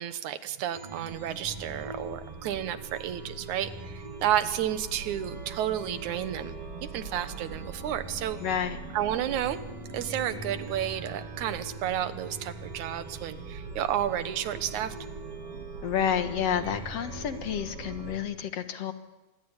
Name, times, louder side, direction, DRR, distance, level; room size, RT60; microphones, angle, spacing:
voice 1, 0.0-6.6 6.8-8.4 8.9-9.6 9.9-14.9, right 11 dB, 80° right, 12 dB, 2.6 m, -31 dB
Chime, 0.7-18.1, right 3 dB, 50° right, 4.1 m, -41 dB
voice 2, 8.4-8.8 15.8-18.9, left 9 dB, 60° left, 8 dB, 2.4 m, -29 dB
26.0 x 21.5 x 8.9 m, 1.1 s
omnidirectional pair, 3.3 m